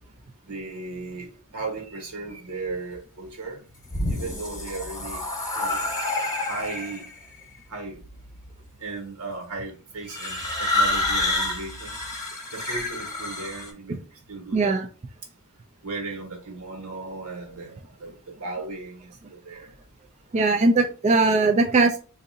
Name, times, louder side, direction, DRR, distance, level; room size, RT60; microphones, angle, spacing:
voice 1, 0.4-3.6 4.1-5.2 5.5-5.8 6.5-7.1 7.7-8.0 8.8-12.1 12.5-14.8 15.8-19.7, right 3 dB, 90° right, 1.4 m, -36 dB
sound 1, 3.7-7.1 8.0-8.5 10.1-13.7, left 2 dB, 15° left, 1.0 m, -28 dB
voice 2, 14.5-14.9 20.3-22.0, right 3 dB, 30° right, 0.3 m, -20 dB
4.0 x 2.6 x 2.7 m
head